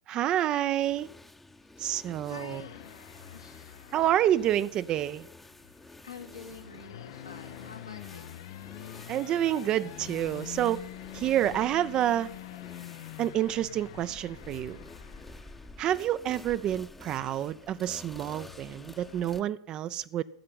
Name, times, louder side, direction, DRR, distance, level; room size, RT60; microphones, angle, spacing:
voice 1, 0.1-1.1 1.8-2.6 3.9-5.3 9.1-10.8 11.1-12.3 13.2-14.8 15.8-20.2, right 12 dB, 35° right, 0.5 m, -28 dB
sound 1, 0.8-19.4, left 2 dB, 5° left, 0.8 m, -50 dB
voice 2, 1.6-4.0 5.6-9.2 9.5-10.0 10.4-10.7 11.7-11.8 12.4-12.6, left 4 dB, 85° left, 2.0 m, -50 dB
sound 2, 2.5-19.4, left 14 dB, 60° left, 0.6 m, -47 dB
13.0 x 7.6 x 8.6 m
figure-of-eight pair, 95°, 2 cm